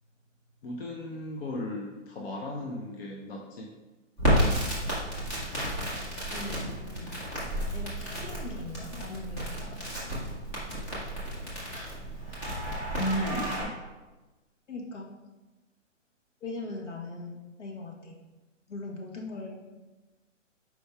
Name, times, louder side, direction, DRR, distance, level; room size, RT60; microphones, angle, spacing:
voice 1, 0.6-3.7 12.9-13.8, equal, 50° left, -1 dB, 0.7 m, -35 dB
Crackle, 4.2-13.6, equal, 10° left, 0.4 m, -31 dB
voice 2, 6.3-7.2 7.7-10.1 11.7-12.0 12.3-12.4 14.7-15.1 16.4-18.2 18.7-19.6, left 3 dB, 65° left, 0 dB, 1.2 m, -41 dB
5.1 x 4.5 x 2.3 m, 1.2 s
figure-of-eight pair, 130°, 38 cm